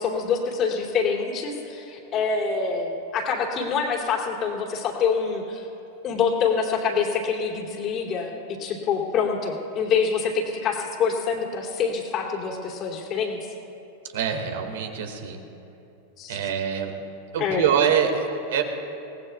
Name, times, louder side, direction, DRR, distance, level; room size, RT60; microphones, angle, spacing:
voice 1, 0.0-5.7 6.0-8.3 8.6-13.4 16.2-16.5 17.4-17.7, left 5 dB, 35° left, 0 dB, 3.0 m, -26 dB
voice 2, 14.1-15.4 16.3-16.9 17.3-18.6, right 8 dB, 55° right, 5 dB, 1.9 m, -24 dB
28.5 x 19.0 x 2.4 m, 2.9 s
figure-of-eight pair, 90°, 0 cm